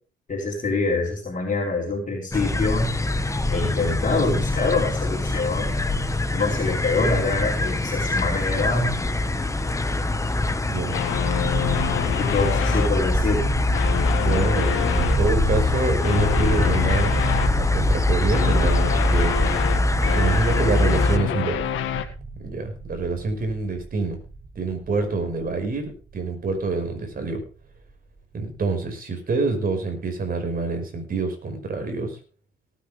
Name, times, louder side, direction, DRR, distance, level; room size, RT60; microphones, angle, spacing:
voice 1, 0.3-2.9 3.5-5.7 6.3-9.0 12.2-13.4, left 3 dB, 40° left, -1 dB, 4.4 m, -25 dB
sound 1, 2.3-21.2, left 2 dB, 15° left, 1.5 m, -23 dB
voice 2, 10.7-11.0 14.2-17.1 17.6-19.4 20.1-21.6 22.4-24.2 24.6-27.4 28.3-32.2, right 3 dB, 45° right, 5 dB, 5.5 m, -26 dB
sound 2, 10.9-12.9 13.6-15.2 16.0-17.6 18.3-22.0, left 10 dB, 85° left, 1.8 m, -27 dB
sound 3, 11.4-27.3, right 3 dB, 25° right, 2.0 m, -30 dB
19.0 x 9.8 x 3.5 m, 0.35 s
cardioid pair, 90°, 20 cm